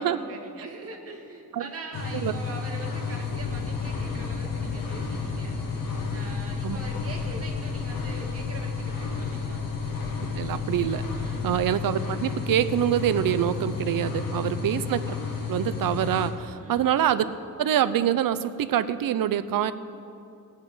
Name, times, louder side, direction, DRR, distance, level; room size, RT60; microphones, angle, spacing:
voice 1, 0.0-5.6 6.1-9.7 11.2-11.6 14.3-14.8 16.5-17.0, right 3 dB, 45° right, 1 dB, 1.9 m, -42 dB
sound 1, 1.9-16.3, left 5 dB, 90° left, 1.7 m, -32 dB
sound 2, 3.2-11.5, left 5 dB, 55° left, 0.8 m, -40 dB
voice 2, 10.3-11.0 11.4-15.2 15.5-17.3 17.6-19.7, right 10 dB, 90° right, 14 dB, 0.6 m, -25 dB
18.0 x 8.9 x 5.4 m, 2.6 s
wide cardioid pair, 145°, 33 cm